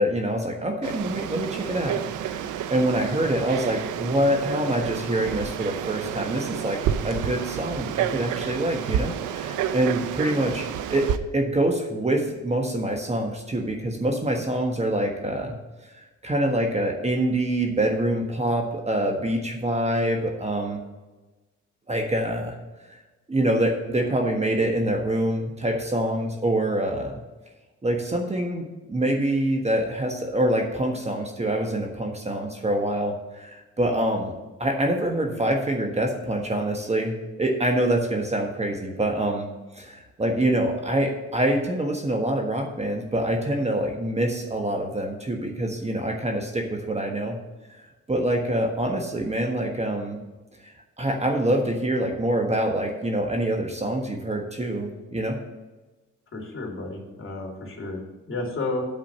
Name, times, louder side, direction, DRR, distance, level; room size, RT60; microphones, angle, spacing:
voice 1, 0.0-11.1 11.3-15.6 15.9-20.8 21.9-22.5 22.9-23.0 23.3-27.2 27.8-34.3 34.6-39.5 39.7-47.4 48.1-50.2 51.0-55.4, right 1 dB, 20° right, 2 dB, 1.4 m, -25 dB
Frog, 0.8-11.2, right 9 dB, 85° right, 0.6 m, -30 dB
voice 2, 56.3-58.0 58.3-58.8, left 2 dB, 45° left, -1 dB, 3.1 m, -31 dB
8.8 x 5.0 x 7.3 m, 1.2 s
cardioid pair, 90°, 30 cm